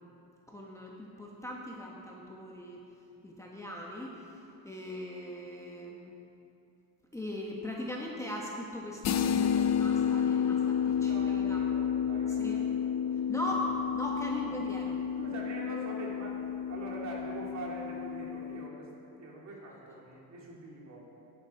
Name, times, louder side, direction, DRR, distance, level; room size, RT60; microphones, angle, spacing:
voice 1, 0.5-2.8 3.2-6.1 7.1-11.6 12.4-12.6 13.3-15.0, left 1 dB, 10° left, -3 dB, 1.2 m, -39 dB
sound 1, 9.0-18.7, left 8 dB, 45° left, 0.6 m, -31 dB
voice 2, 11.1-12.7 14.3-14.4 15.1-16.4 16.7-21.1, right 2 dB, 45° right, -4 dB, 3.1 m, -43 dB
15.5 x 11.0 x 4.6 m, 2.8 s
cardioid pair, 140°, 38 cm